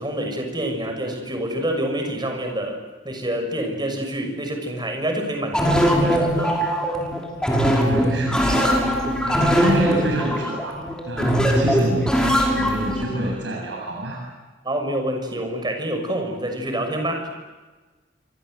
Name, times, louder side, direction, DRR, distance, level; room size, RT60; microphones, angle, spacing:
voice 1, 0.0-2.8 3.0-6.6 14.6-17.3, right 1 dB, 25° right, 4 dB, 6.5 m, -27 dB
sound 1, 5.5-13.0, equal, 5° left, 5.7 m, -21 dB
voice 2, 7.8-8.8 9.2-12.1 12.5-14.2, right 1 dB, 75° right, -1 dB, 7.9 m, -27 dB
27.5 x 26.0 x 8.0 m, 1.3 s
head